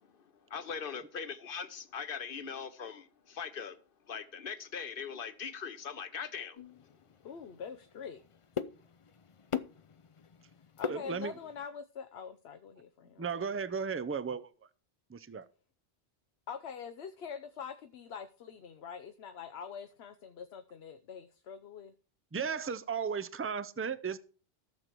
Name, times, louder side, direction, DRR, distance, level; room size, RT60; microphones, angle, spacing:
voice 1, 0.5-3.8 4.1-6.6, left 6 dB, 60° left, 1.1 m, -40 dB
sound 1, 6.6-11.6, left 7 dB, 40° left, 0.5 m, -42 dB
voice 2, 7.2-8.2 10.8-13.2 16.5-21.9, left 6 dB, 85° left, 1.0 m, -44 dB
voice 3, 10.9-11.3 13.2-14.5 15.1-15.5 22.3-24.2, right 6 dB, 20° right, 0.4 m, -35 dB
14.5 x 6.8 x 4.5 m
omnidirectional pair, 1.0 m